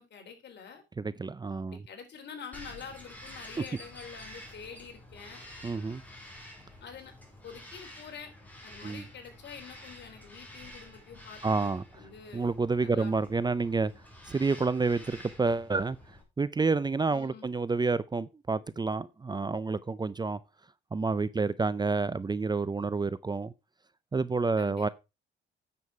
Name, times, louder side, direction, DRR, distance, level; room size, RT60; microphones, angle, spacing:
voice 1, 0.0-0.8 1.7-5.4 6.8-7.1 7.4-8.3 8.6-12.5 12.8-13.2 17.1-17.5 24.6-24.9, left 6 dB, 60° left, 3.8 m, -47 dB
voice 2, 1.0-1.8 5.6-6.0 8.8-9.0 11.4-11.8 12.3-13.9 14.3-16.0 16.4-20.4 20.9-23.5 24.1-24.9, right 4 dB, 20° right, 0.6 m, -29 dB
Bird vocalization bird call bird song, 2.5-16.2, left 1 dB, 10° left, 4.7 m, -49 dB
9.5 x 7.2 x 4.8 m
cardioid pair, 90°, 20 cm